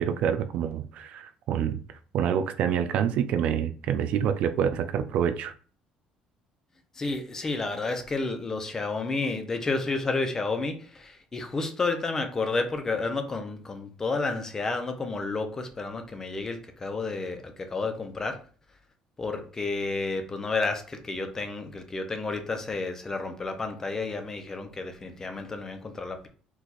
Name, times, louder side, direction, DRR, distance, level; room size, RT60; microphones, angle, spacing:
voice 1, 0.0-1.8 2.1-5.5, right 8 dB, 65° right, 0.4 m, -27 dB
voice 2, 7.0-18.4 19.2-26.3, left 3 dB, 25° left, 0.8 m, -31 dB
4.7 x 2.5 x 4.1 m
cardioid pair, 120°, 2 cm